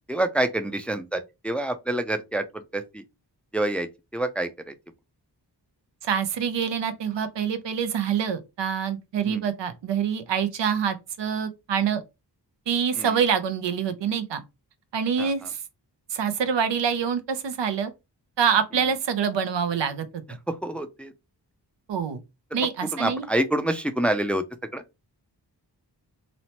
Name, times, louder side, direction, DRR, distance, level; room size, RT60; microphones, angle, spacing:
voice 1, 0.1-3.0 3.5-4.7 9.2-9.4 13.0-13.2 15.2-15.5 20.5-21.1 22.6-24.4 24.7-24.8, right 1 dB, 5° left, 0.4 m, -27 dB
voice 2, 6.0-12.0 12.7-14.4 14.9-15.6 16.1-17.9 18.4-20.2 21.9-22.2 22.5-23.3, right 7 dB, 85° right, 0.6 m, -26 dB
3.0 x 2.0 x 2.8 m
cardioid pair, 40°, 42 cm